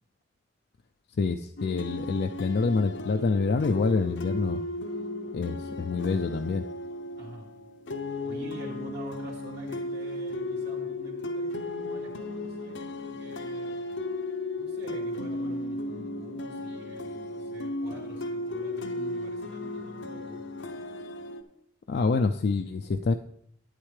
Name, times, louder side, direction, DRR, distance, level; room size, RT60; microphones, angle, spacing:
voice 1, 1.2-4.6 5.3-6.6 21.9-23.1, left 4 dB, 60° left, 6 dB, 0.4 m, -26 dB
sound 1, 1.6-21.4, left 2 dB, 80° left, 0.7 m, -35 dB
voice 2, 7.2-7.5 8.2-13.8 14.6-20.4, right 2 dB, 65° right, -4 dB, 2.7 m, -46 dB
12.0 x 9.0 x 3.2 m, 0.71 s
head